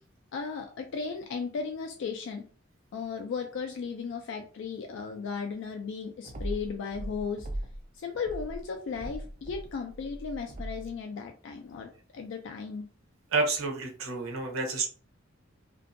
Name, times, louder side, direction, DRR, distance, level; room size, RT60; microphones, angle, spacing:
voice 1, 0.3-2.5 2.9-7.5 7.9-12.9, left 5 dB, 65° left, 3 dB, 0.3 m, -36 dB
sound 1, 6.2-7.9 8.2-10.9, right 1 dB, 35° right, 0.4 m, -39 dB
voice 2, 13.3-14.9, right 3 dB, 90° right, 3 dB, 0.6 m, -29 dB
2.5 x 2.2 x 2.5 m, 0.40 s
head